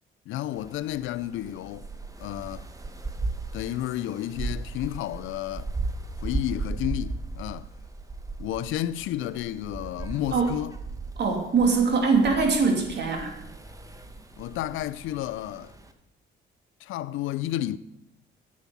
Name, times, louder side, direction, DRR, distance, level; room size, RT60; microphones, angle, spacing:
voice 1, 0.3-1.9 2.2-2.7 3.5-5.7 6.2-7.7 8.4-10.7 14.4-15.7 16.8-17.8, left 13 dB, 85° left, 0.5 m, -31 dB
sound 1, 0.5-15.9, right 3 dB, 15° right, 1.2 m, -37 dB
voice 2, 10.3-10.6 11.2-13.3, right 4 dB, 60° right, 2.9 m, -22 dB
9.7 x 8.5 x 7.0 m
cardioid pair, 90°, 20 cm